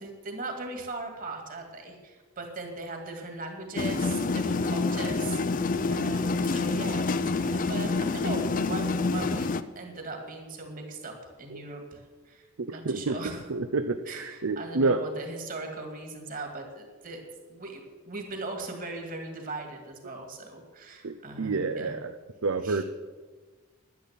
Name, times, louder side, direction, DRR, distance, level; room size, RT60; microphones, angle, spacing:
voice 1, 0.0-13.4 14.0-22.0 22.6-22.8, right 2 dB, 40° right, 3 dB, 2.3 m, -39 dB
sound 1, 3.8-9.6, left 3 dB, 40° left, 0.5 m, -27 dB
voice 2, 12.6-13.2 13.5-15.0 21.0-22.2 22.4-22.8, right 3 dB, 70° right, 9 dB, 0.6 m, -29 dB
10.5 x 10.5 x 7.5 m, 1.3 s
head